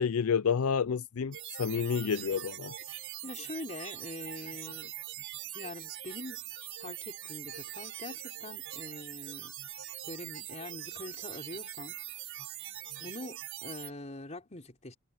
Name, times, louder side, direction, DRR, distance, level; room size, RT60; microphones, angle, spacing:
voice 1, 0.0-2.7, left 6 dB, 75° left, 0.5 m, -29 dB
sound 1, 1.3-13.9, right 12 dB, 60° right, 5.3 m, -42 dB
voice 2, 2.9-4.9 5.5-6.4 6.8-9.5 10.1-12.0 13.0-15.0, left 2 dB, 30° left, 3.8 m, -44 dB
head